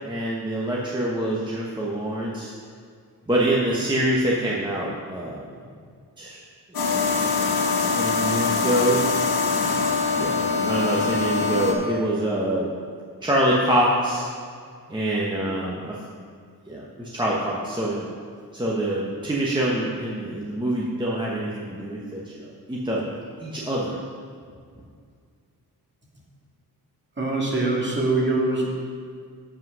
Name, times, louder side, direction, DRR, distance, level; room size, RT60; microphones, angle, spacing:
voice 1, 0.0-2.5 3.3-5.6 6.2-6.4 7.0-7.3 7.8-9.0 10.1-12.7 13.2-14.2 14.9-16.0 16.7-18.1 18.5-23.0 23.4-24.0, right 1 dB, 10° right, -5 dB, 1.1 m, -25 dB
sound 1, 6.7-11.7, left 4 dB, 70° left, 1.3 m, -23 dB
voice 2, 27.2-28.7, right 2 dB, 30° right, -2 dB, 2.0 m, -23 dB
7.6 x 5.5 x 6.1 m, 2.1 s
cardioid pair, 75°, 38 cm